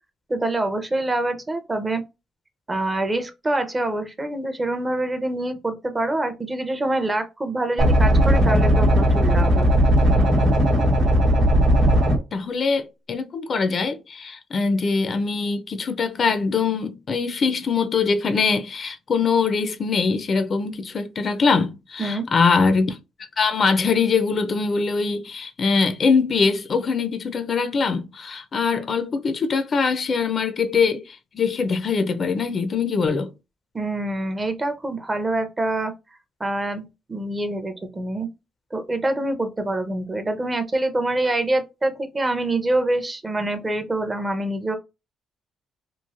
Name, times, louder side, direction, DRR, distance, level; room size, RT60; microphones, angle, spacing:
voice 1, 0.3-2.0 2.7-9.7 22.0-22.3 33.7-35.9 36.4-38.3 38.7-44.8, right 2 dB, 25° right, 0.6 m, -25 dB
sound 1, 7.8-12.2, equal, 75° right, 1.0 m, -17 dB
voice 2, 12.3-33.3, left 5 dB, 50° left, 0.4 m, -22 dB
3.0 x 2.5 x 2.4 m
cardioid pair, 90°, 0 cm